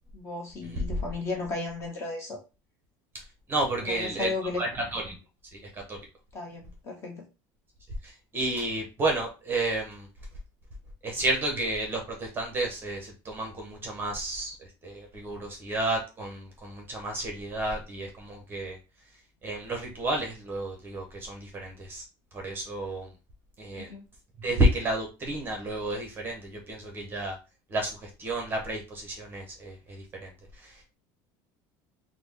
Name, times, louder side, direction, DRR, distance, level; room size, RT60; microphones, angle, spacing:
voice 1, 0.1-2.4 3.9-4.6 6.3-7.2 23.8-24.0, left 3 dB, 25° left, 0 dB, 0.9 m, -34 dB
voice 2, 3.5-5.2 5.5-6.0 8.0-10.1 11.0-18.8 19.4-22.0 22.3-23.1 23.6-23.9 24.4-27.4 27.7-31.0, right 1 dB, 20° right, 1 dB, 0.8 m, -31 dB
3.7 x 2.1 x 3.2 m, 0.30 s
cardioid pair, 170°, 10 cm